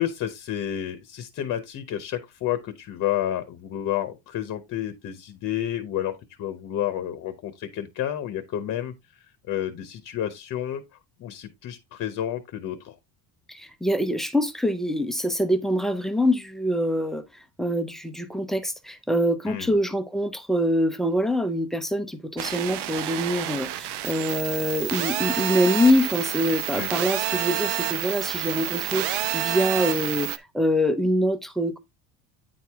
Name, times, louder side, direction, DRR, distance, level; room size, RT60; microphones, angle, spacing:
voice 1, 0.0-8.9 9.5-10.8 11.2-12.9 19.5-19.7 26.7-26.9, left 11 dB, 40° left, 0.9 m, -30 dB
voice 2, 13.5-17.2 17.6-31.8, equal, ahead, 0.5 m, -25 dB
sound 1, 22.4-30.4, right 14 dB, 70° right, 0.8 m, -29 dB
9.3 x 4.6 x 3.5 m
cardioid pair, 175°, 42 cm